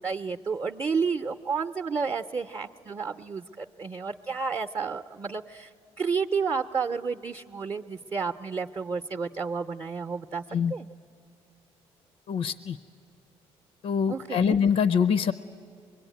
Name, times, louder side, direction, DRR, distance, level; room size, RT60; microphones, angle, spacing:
voice 1, 0.0-5.7 6.0-10.4 10.7-10.9 14.1-14.6, right 5 dB, 30° right, 5 dB, 0.7 m, -31 dB
voice 2, 12.3-12.8 13.8-15.3, left 7 dB, 70° left, 14 dB, 0.6 m, -24 dB
24.5 x 21.5 x 9.3 m, 2.5 s
supercardioid pair, 75°, 12 cm